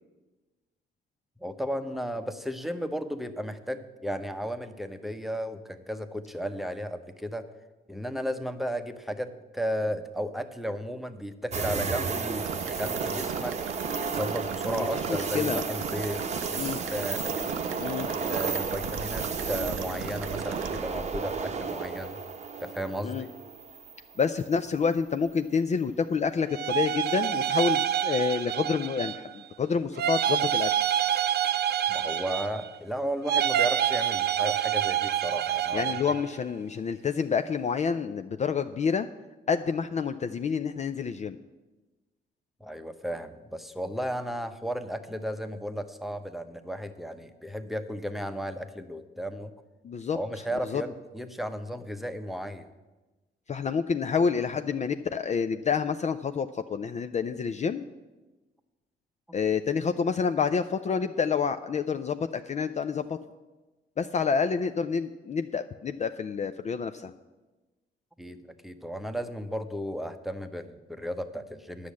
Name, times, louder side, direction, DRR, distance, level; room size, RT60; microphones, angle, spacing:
voice 1, 1.4-7.5 7.9-13.6 14.0-16.2 16.5-17.4 18.1-22.2 22.6-23.3 31.9-35.9 42.6-49.5 50.1-52.7 68.2-71.9, equal, ahead, 8 dB, 0.8 m, -34 dB
sound 1, 11.5-24.5 24.9-25.0 27.5-27.9, right 5 dB, 35° right, 0.8 m, -33 dB
sound 2, 12.4-20.8, right 8 dB, 85° right, 0.8 m, -40 dB
voice 2, 14.7-15.6 16.6-16.8 17.8-18.1 23.0-23.3 24.2-30.7 35.7-39.1 39.5-41.4 49.8-50.2 50.6-50.8 53.5-57.8 59.3-63.2 64.0-67.1, left 6 dB, 35° left, 9 dB, 0.4 m, -28 dB
sound 3, 26.5-29.3 30.0-32.8 33.2-36.2, right 10 dB, 55° right, 0.5 m, -27 dB
10.0 x 6.3 x 8.4 m, 1.2 s
cardioid pair, 90°, 20 cm